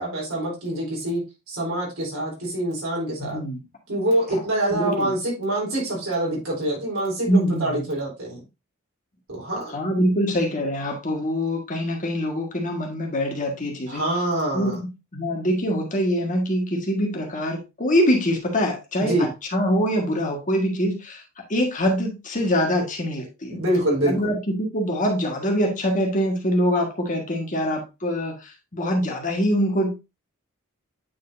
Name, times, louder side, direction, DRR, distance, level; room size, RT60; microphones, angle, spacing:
voice 1, 0.0-3.4 3.9-8.4 9.3-9.7 13.9-14.8 19.0-19.3 23.5-24.3, right 1 dB, 70° right, -4 dB, 4.3 m, -25 dB
voice 2, 3.2-3.6 4.3-4.4 4.7-5.1 7.3-7.7 9.7-14.0 14.5-21.2 21.5-23.6 24.0-30.0, equal, 35° left, 1 dB, 1.7 m, -24 dB
8.9 x 4.8 x 2.7 m, 0.25 s
head